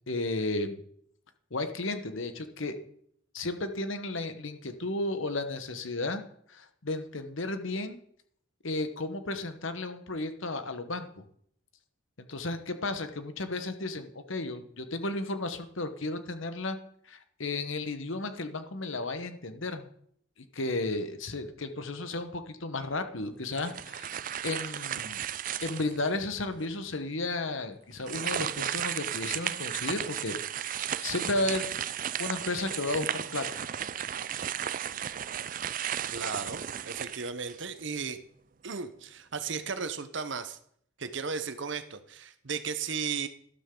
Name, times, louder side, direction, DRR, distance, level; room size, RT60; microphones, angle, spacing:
voice 1, 0.1-0.8 1.5-2.8 3.3-6.2 6.5-8.0 8.6-11.2 12.2-16.8 17.1-19.9 20.5-25.2 25.6-31.7 32.2-33.6, left 2 dB, 70° left, 9 dB, 1.2 m, -33 dB
sound 1, 23.5-26.1 26.6-26.7 28.0-37.8, right 9 dB, 40° right, 0.4 m, -34 dB
voice 2, 36.1-38.2 38.6-40.6 41.0-43.3, right 5 dB, 60° right, 10 dB, 0.9 m, -35 dB
12.5 x 12.5 x 3.8 m, 0.66 s
head